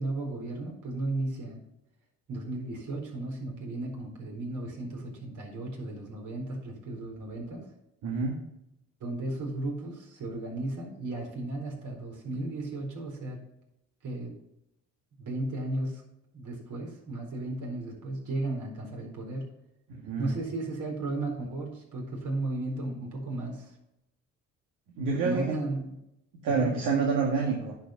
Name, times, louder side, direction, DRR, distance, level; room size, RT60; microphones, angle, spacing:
voice 1, 0.0-1.6 2.3-7.7 9.0-13.4 14.0-14.4 15.2-16.0 16.3-19.5 20.2-23.7 25.2-25.9 26.4-26.8, right 2 dB, 65° right, 0 dB, 4.4 m, -35 dB
voice 2, 8.0-8.4 19.9-20.3 25.0-25.6 26.4-27.8, right 4 dB, 80° right, -1 dB, 1.9 m, -28 dB
10.5 x 5.5 x 5.9 m, 0.82 s
cardioid pair, 80°, 32 cm